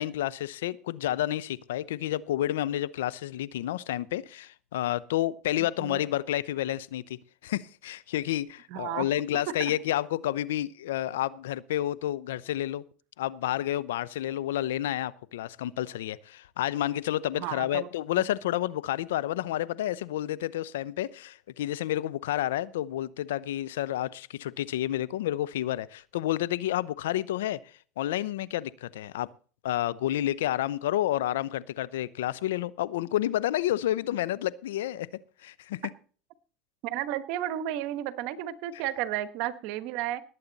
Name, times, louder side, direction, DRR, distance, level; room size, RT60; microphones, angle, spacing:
voice 1, 0.0-12.8 13.2-27.6 28.0-29.3 29.6-35.1 35.4-35.8, left 13 dB, 90° left, 0.7 m, -30 dB
voice 2, 5.6-6.0 8.7-9.1 9.6-9.7 17.3-17.9 18.2-18.3 36.8-40.2, right 12 dB, 70° right, 1.2 m, -33 dB
19.0 x 8.5 x 4.1 m
supercardioid pair, 100°, 0 cm